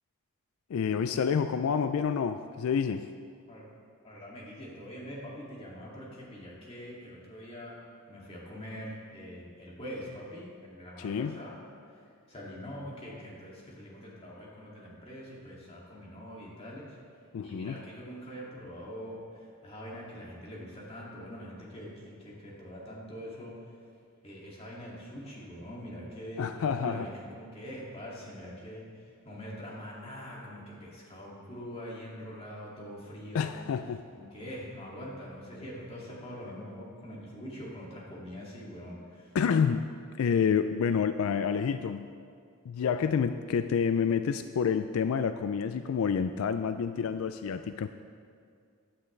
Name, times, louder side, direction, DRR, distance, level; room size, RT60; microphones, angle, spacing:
voice 1, 0.7-3.1 11.0-11.4 17.3-17.8 26.4-27.1 33.3-34.0 39.3-39.9 40.2-42.1 42.7-47.9, left 6 dB, 80° left, 10 dB, 0.4 m, -28 dB
voice 2, 4.0-7.8 8.1-11.6 11.9-12.0 12.3-17.0 17.4-23.5 24.2-33.5 34.1-39.4, equal, 30° left, -5 dB, 2.3 m, -43 dB
15.0 x 10.0 x 3.3 m, 2.2 s
head